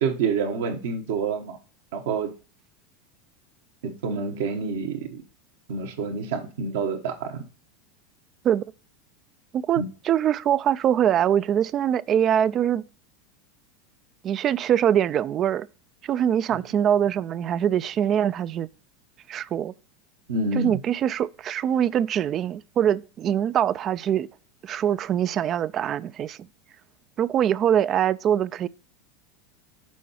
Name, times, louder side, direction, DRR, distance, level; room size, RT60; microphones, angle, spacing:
voice 1, 0.0-1.6 1.9-2.3 3.8-5.2 5.7-7.4 9.8-9.9 20.3-20.8, right 5 dB, 70° right, 1.3 m, -27 dB
voice 2, 9.5-12.8 14.2-15.7 16.0-18.7 19.3-19.7 20.6-24.3 24.6-26.4 27.2-28.7, right 9 dB, 40° right, 0.3 m, -23 dB
6.3 x 4.5 x 4.2 m
hypercardioid pair, 95°, 0 cm